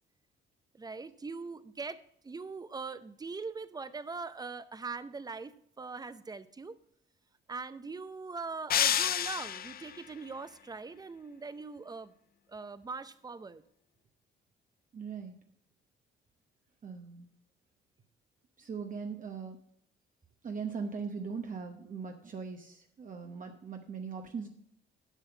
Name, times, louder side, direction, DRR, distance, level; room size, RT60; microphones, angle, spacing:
voice 1, 0.7-6.8 7.5-12.1 12.5-13.6, right 4 dB, 20° right, 14 dB, 0.6 m, -41 dB
sound 1, 8.7-10.0, left 10 dB, 50° left, 0.5 m, -29 dB
voice 2, 14.9-15.4 16.8-17.3 18.6-19.6 20.4-24.5, right 5 dB, 40° right, 4 dB, 0.9 m, -40 dB
8.3 x 5.5 x 7.0 m, 0.69 s
cardioid pair, 90°, 20 cm